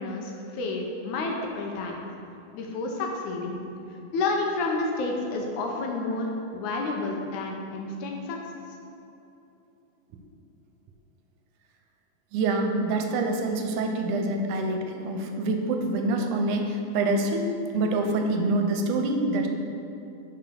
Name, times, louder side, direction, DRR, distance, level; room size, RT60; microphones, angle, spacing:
voice 1, 0.0-1.9 2.5-3.6 4.1-8.4, left 3 dB, 75° left, 1 dB, 2.1 m, -30 dB
voice 2, 12.3-17.4 17.7-19.5, right 2 dB, 85° right, 3 dB, 2.1 m, -26 dB
6.0 x 5.1 x 6.1 m, 2.8 s
omnidirectional pair, 3.6 m